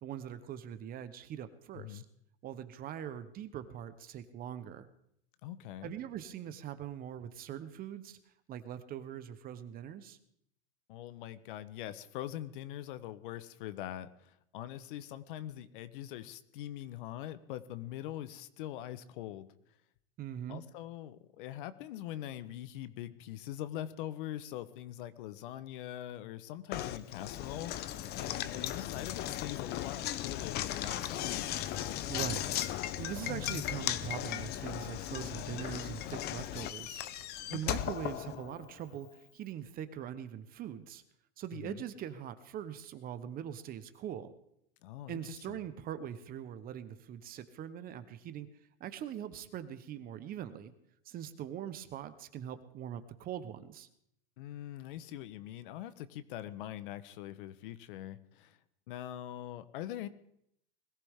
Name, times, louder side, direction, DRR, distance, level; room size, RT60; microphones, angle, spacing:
voice 1, 0.0-2.0 2.4-4.9 5.8-8.2 8.5-10.2 20.2-20.6 32.1-32.5 33.0-37.0 37.5-39.1 39.3-41.0 41.4-44.3 45.1-48.5 48.8-50.7 51.0-53.9, right 10 dB, 30° right, 12 dB, 1.1 m, -42 dB
voice 2, 1.7-2.0 5.4-5.9 10.9-19.5 20.5-27.7 28.2-31.3 37.5-37.9 41.5-41.8 44.8-45.2 45.5-45.6 54.4-58.6 58.9-60.1, left 12 dB, 60° left, 13 dB, 1.1 m, -43 dB
Knock, 26.7-38.9, left 12 dB, 35° left, 0.8 m, -37 dB
21.0 x 14.5 x 3.7 m, 0.74 s
supercardioid pair, 135°, 29 cm